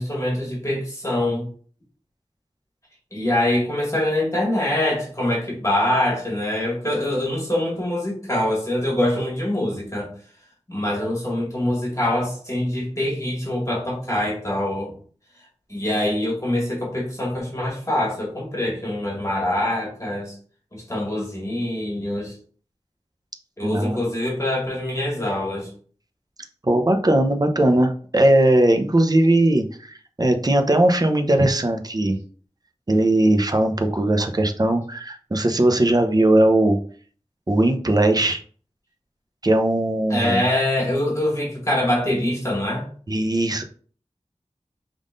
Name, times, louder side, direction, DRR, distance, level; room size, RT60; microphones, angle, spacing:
voice 1, 0.0-1.5 3.1-10.1 10.7-14.9 15.7-20.3 20.7-22.4 23.6-25.7 40.1-42.9, left 1 dB, 25° left, -3 dB, 1.9 m, -24 dB
voice 2, 23.6-24.0 26.6-32.2 32.9-36.8 37.5-38.4 39.4-40.4 43.1-43.6, right 1 dB, 35° right, 5 dB, 0.7 m, -19 dB
5.2 x 3.7 x 2.5 m, 0.44 s
wide cardioid pair, 55°, 11 cm